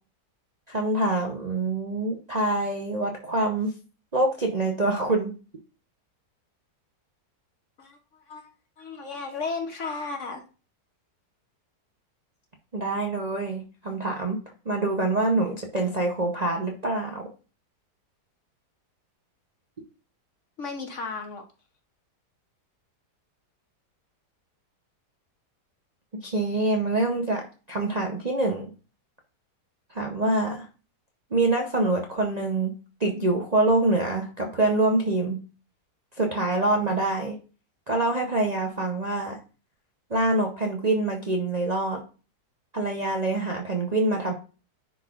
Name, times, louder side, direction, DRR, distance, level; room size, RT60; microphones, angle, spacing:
voice 1, 0.7-3.7 4.1-5.3 12.7-17.3 26.2-28.7 29.9-30.7 31.3-35.4 36.2-37.4 37.9-39.4 40.1-42.0 42.7-44.3, right 2 dB, 40° right, 0 dB, 0.6 m, -25 dB
voice 2, 8.8-10.4 20.6-21.4, left 4 dB, 55° left, 4 dB, 1.0 m, -34 dB
10.0 x 4.1 x 2.4 m, 0.34 s
omnidirectional pair, 1.8 m